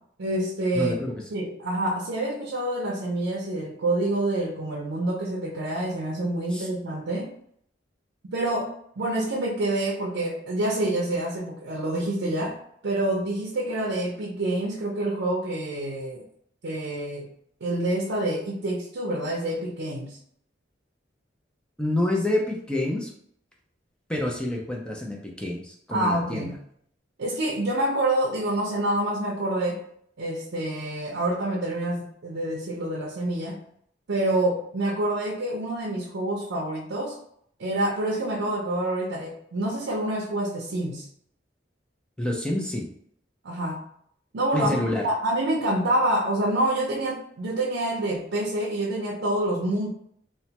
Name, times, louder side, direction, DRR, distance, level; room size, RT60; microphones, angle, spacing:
voice 1, 0.2-0.9 1.3-7.3 8.3-12.6 12.8-16.2 16.6-17.3 17.6-20.2 25.9-26.6 27.2-29.8 30.2-33.6 34.1-37.1 37.6-41.0 43.4-43.8 44.3-49.9, right 1 dB, 75° right, -3 dB, 0.5 m, -27 dB
voice 2, 0.7-1.1 6.5-6.7 21.8-23.1 24.1-26.5 42.2-42.9 44.5-45.1, left 1 dB, 5° left, -1 dB, 0.4 m, -27 dB
3.0 x 2.1 x 2.8 m, 0.67 s
head